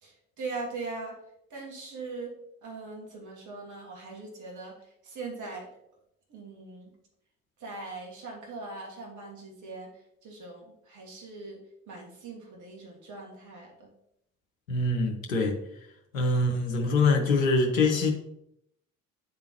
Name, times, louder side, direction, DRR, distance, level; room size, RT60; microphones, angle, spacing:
voice 1, 0.0-1.2 1.5-2.3 2.6-4.7 5.0-5.7 6.3-6.9 7.6-9.9 10.2-11.6 11.9-13.9, right 3 dB, 45° right, 0 dB, 1.8 m, -40 dB
voice 2, 14.7-15.6 16.1-18.1, left 3 dB, 80° left, 2 dB, 0.8 m, -24 dB
9.4 x 3.7 x 2.9 m, 0.78 s
figure-of-eight pair, 45°, 40 cm